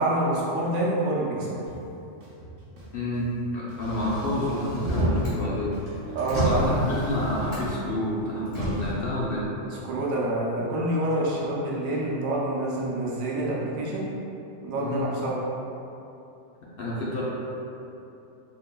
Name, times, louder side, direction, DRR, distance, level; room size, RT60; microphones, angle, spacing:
voice 1, 0.0-1.6 6.1-6.8 9.8-14.1 14.6-15.4, right 1 dB, 85° right, -5 dB, 1.1 m, -27 dB
sound 1, 1.7-1.8 2.2-3.2 3.7-4.8 5.2-7.7, right 2 dB, 65° right, 1.0 m, -47 dB
voice 2, 2.9-5.8 6.3-9.5 14.8-15.1 16.8-17.2, left 1 dB, 55° left, -7 dB, 0.7 m, -29 dB
Motor vehicle (road), 3.8-5.4 5.7-7.9 8.5-8.9, equal, 30° left, 1.4 m, -29 dB
3.7 x 3.7 x 2.2 m, 2.8 s
omnidirectional pair, 1.4 m